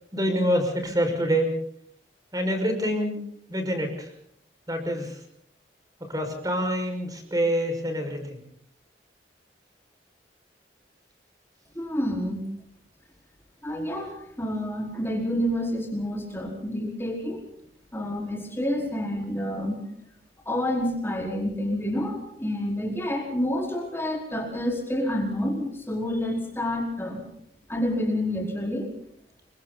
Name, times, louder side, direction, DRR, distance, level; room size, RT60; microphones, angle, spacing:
voice 1, 0.1-1.5 2.3-3.2 3.5-4.1 4.7-5.2 6.1-8.4, equal, 20° right, 4 dB, 5.8 m, -26 dB
voice 2, 11.8-12.4 13.6-17.4 17.9-19.8 20.5-27.2 27.7-28.9, left 1 dB, 15° left, 0 dB, 4.6 m, -28 dB
29.5 x 24.0 x 4.1 m, 0.67 s
head